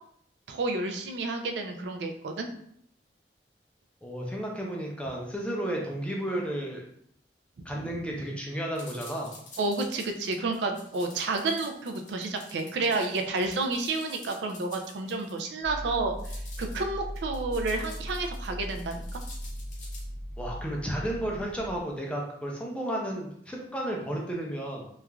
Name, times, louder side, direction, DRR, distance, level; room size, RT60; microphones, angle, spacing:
voice 1, 0.5-2.5 7.6-7.7 9.6-19.2, right 3 dB, 75° right, 5 dB, 0.4 m, -30 dB
voice 2, 4.0-6.8 7.7-9.4 20.4-24.9, right 1 dB, 5° left, -1 dB, 0.4 m, -33 dB
sound 1, 8.8-15.4 16.2-16.8 17.2-20.0, left 2 dB, 40° left, 0.7 m, -49 dB
sound 2, 15.6-21.9, equal, 20° right, 0.9 m, -38 dB
3.1 x 2.4 x 2.2 m, 0.69 s
head